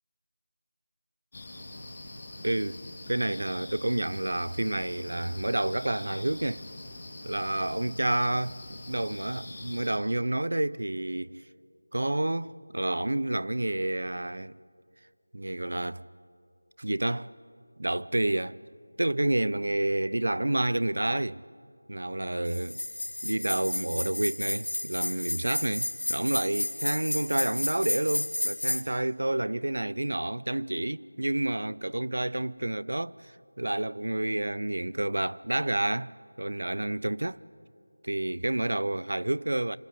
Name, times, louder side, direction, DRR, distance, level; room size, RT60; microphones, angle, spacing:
sound 1, 1.3-10.0, left 2 dB, 20° left, 3.1 m, -44 dB
voice 1, 2.4-2.8 3.1-6.6 7.2-8.6 8.9-11.4 11.9-14.6 15.3-16.0 16.8-17.3 17.8-18.6 19.0-21.4 21.9-22.8 23.2-37.4 38.0-39.8, right 1 dB, 65° right, 0.6 m, -29 dB
sound 2, 22.5-28.8, left 1 dB, 75° left, 2.2 m, -32 dB
26.5 x 24.0 x 8.6 m
figure-of-eight pair, 175°, 0 cm